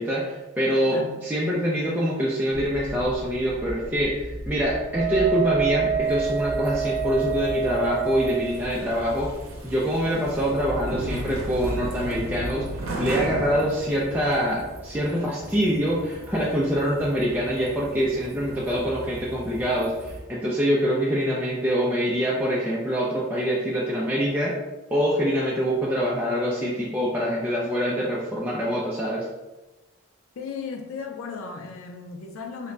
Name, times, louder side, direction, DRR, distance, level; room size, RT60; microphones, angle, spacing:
voice 1, 0.0-9.3 9.6-12.6 13.0-24.6 24.9-29.3, equal, 10° right, -6 dB, 0.3 m, -25 dB
voice 2, 0.9-1.2 30.4-32.7, left 5 dB, 85° left, 3 dB, 0.4 m, -36 dB
sound 1, 2.5-14.4, equal, 20° left, 0.7 m, -40 dB
Wind instrument woodwind instrument, 4.9-8.6, right 8 dB, 40° right, 0.7 m, -27 dB
sound 2, 6.0-20.2, right 1 dB, 85° right, 0.6 m, -36 dB
3.2 x 2.1 x 3.7 m, 1.1 s
head